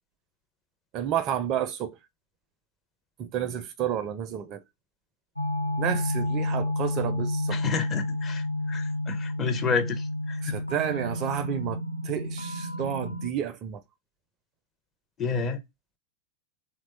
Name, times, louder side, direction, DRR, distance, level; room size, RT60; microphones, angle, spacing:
voice 1, 0.9-2.0 3.2-4.6 5.8-7.6 10.4-11.8 12.0-13.8, right 9 dB, 35° right, 0.4 m, -30 dB
sound 1, 5.4-13.3, left 1 dB, 85° left, 0.4 m, -30 dB
voice 2, 7.5-10.6 15.2-15.6, left 5 dB, 25° left, 0.5 m, -30 dB
2.9 x 2.2 x 4.0 m
figure-of-eight pair, 90°, 0 cm